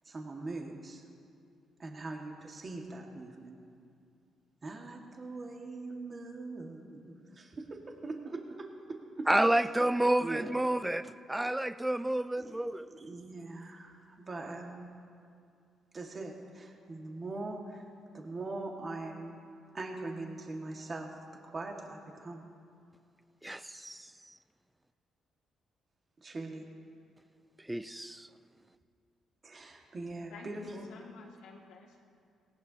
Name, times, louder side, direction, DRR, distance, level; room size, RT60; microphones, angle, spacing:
voice 1, 0.0-1.0 1.8-3.6 4.6-9.3 10.2-10.5 12.4-12.6 12.9-15.0 15.9-17.8 18.1-19.3 19.7-21.1 21.4-22.4 26.2-26.7 29.4-30.9, right 2 dB, 35° right, 1 dB, 1.8 m, -42 dB
voice 2, 9.3-12.9 23.4-24.1 27.7-28.3, right 1 dB, 10° right, 13 dB, 0.4 m, -30 dB
voice 3, 30.3-32.0, left 4 dB, 90° left, -1 dB, 2.2 m, -52 dB
18.5 x 17.5 x 2.9 m, 2.4 s
cardioid pair, 90°, 0 cm